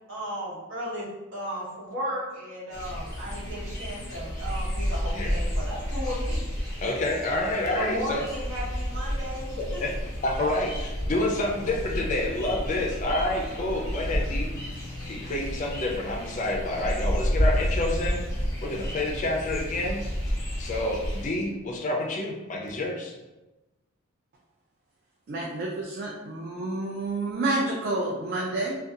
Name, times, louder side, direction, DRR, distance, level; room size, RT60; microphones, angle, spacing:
voice 1, 0.1-6.4 7.7-9.8, equal, 70° right, -8 dB, 1.1 m, -35 dB
sound 1, 2.7-21.3, equal, 15° left, 0.7 m, -31 dB
voice 2, 6.8-8.2 9.6-9.9 10.2-20.0 20.3-23.1, left 1 dB, 35° left, 0 dB, 0.4 m, -29 dB
voice 3, 25.3-28.8, right 2 dB, 50° right, -2 dB, 0.3 m, -29 dB
2.6 x 2.2 x 2.4 m, 1.1 s
head